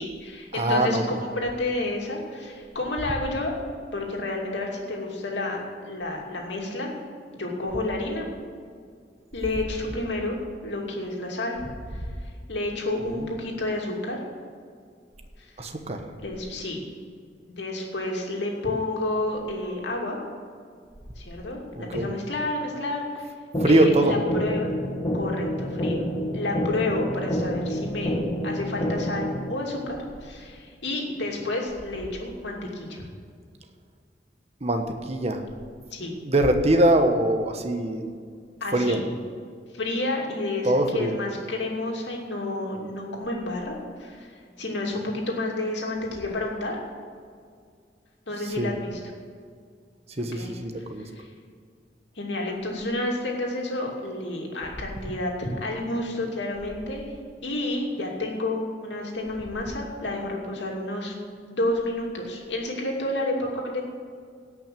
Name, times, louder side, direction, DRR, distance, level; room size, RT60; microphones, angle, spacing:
voice 1, 0.0-3.5 3.9-6.9 7.3-8.3 9.3-10.4 10.6-11.6 11.9-14.2 15.4-15.5 16.1-16.8 17.5-20.2 21.2-23.3 23.6-24.7 25.1-26.1 26.3-33.1 35.9-36.1 38.6-39.0 39.7-46.8 48.3-49.0 50.2-50.5 51.1-51.3 52.2-57.1 57.4-61.1 61.4-63.8, left 2 dB, 75° left, -1 dB, 2.6 m, -30 dB
voice 2, 0.5-1.2 13.0-13.3 15.6-16.0 21.7-22.1 23.6-24.1 24.5-24.6 34.6-35.4 36.2-38.1 38.7-39.0 40.6-41.2 48.4-48.7 50.2-51.0, right 1 dB, 35° right, 5 dB, 1.2 m, -23 dB
sound 1, 23.5-29.5, equal, 30° left, 1.8 m, -28 dB
17.5 x 6.1 x 7.6 m, 2.1 s
head